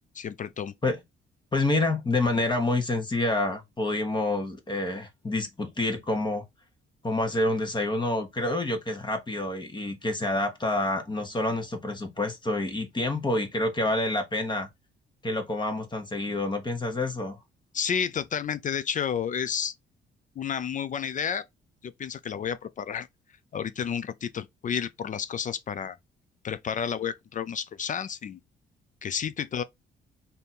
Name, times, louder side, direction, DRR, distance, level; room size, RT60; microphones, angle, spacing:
voice 1, 0.1-0.7 17.7-19.7 20.4-21.4 21.8-23.1 23.5-26.0 26.4-28.4 29.0-29.6, left 7 dB, 40° left, 0.4 m, -31 dB
voice 2, 1.5-6.4 7.0-14.7 15.2-17.4, left 2 dB, 20° left, 1.1 m, -28 dB
3.4 x 2.7 x 4.2 m
cardioid pair, 90°, 20 cm